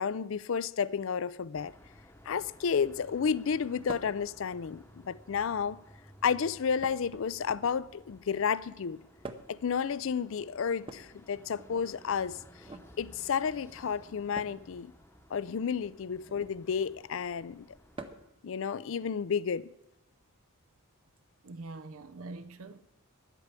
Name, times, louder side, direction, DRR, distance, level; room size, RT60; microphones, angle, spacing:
voice 1, 0.0-1.7 2.3-5.8 6.2-9.0 9.5-12.4 13.0-14.9 15.3-17.7 18.4-19.7, left 6 dB, 60° left, 0.4 m, -31 dB
sound 1, 1.5-18.1, equal, 10° left, 0.9 m, -57 dB
sound 2, 3.9-4.2 5.3-5.8 6.8-7.9 9.2-9.7 10.8-11.9 12.6-12.9 14.3-14.6 16.2-16.6 17.9-18.4 19.8-19.9 21.2-21.3, right 2 dB, 25° right, 0.7 m, -46 dB
voice 2, 21.4-22.8, right 3 dB, 75° right, 0.7 m, -44 dB
11.0 x 8.3 x 8.2 m
head